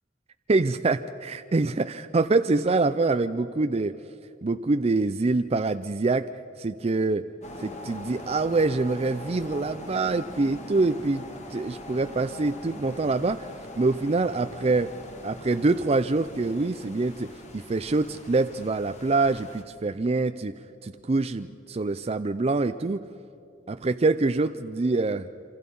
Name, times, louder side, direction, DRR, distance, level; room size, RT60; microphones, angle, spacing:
voice 1, 0.5-4.0 4.4-6.3 6.6-7.2 7.6-14.9 15.2-20.5 20.8-23.0 23.7-25.3, right 3 dB, 35° right, 10 dB, 0.5 m, -25 dB
sound 1, 7.4-19.6, left 1 dB, 40° left, 2.2 m, -43 dB
27.0 x 25.5 x 5.5 m, 2.8 s
head